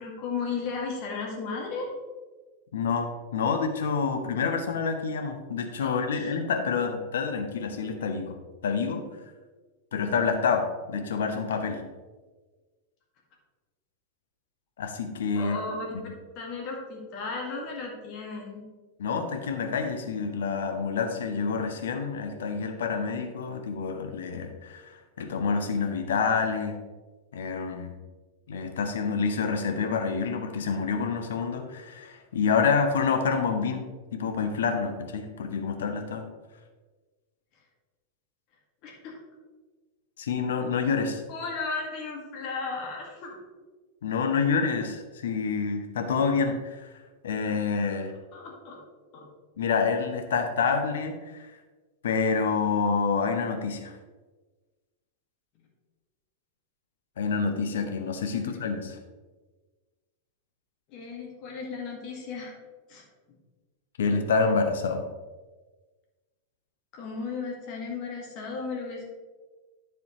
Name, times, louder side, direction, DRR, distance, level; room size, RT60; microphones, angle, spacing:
voice 1, 0.0-1.9 5.8-6.3 15.3-16.0 16.4-18.6 38.8-39.2 41.3-43.4 48.3-48.8 49.1-49.3 58.3-58.6 60.9-62.5 62.9-63.0 66.9-69.1, left 4 dB, 40° left, -1 dB, 2.1 m, -35 dB
voice 2, 2.7-8.4 8.6-9.1 9.9-11.8 14.8-15.6 16.0-16.1 19.0-26.8 27.3-27.9 28.5-36.3 40.2-41.2 44.0-46.9 47.2-48.1 49.6-51.5 52.0-54.0 57.2-59.0 64.0-65.1, left 5 dB, 60° left, 6 dB, 1.0 m, -28 dB
9.9 x 7.0 x 3.2 m, 1.3 s
figure-of-eight pair, 90°, 0 cm